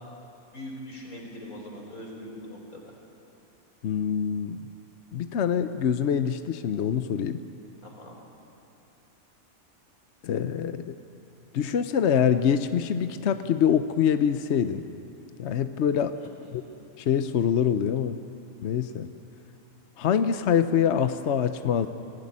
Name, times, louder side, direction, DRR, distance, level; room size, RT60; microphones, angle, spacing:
voice 1, 0.5-2.8 7.8-8.2 16.2-16.7, left 1 dB, 80° left, -1 dB, 4.9 m, -42 dB
voice 2, 3.8-4.6 5.1-7.4 10.2-11.0 11.5-14.8 15.4-16.2 16.5-16.6 17.0-18.2 18.6-19.1 20.0-21.9, left 8 dB, 60° left, 10 dB, 0.9 m, -25 dB
23.5 x 16.5 x 9.6 m, 2.8 s
omnidirectional pair, 1.5 m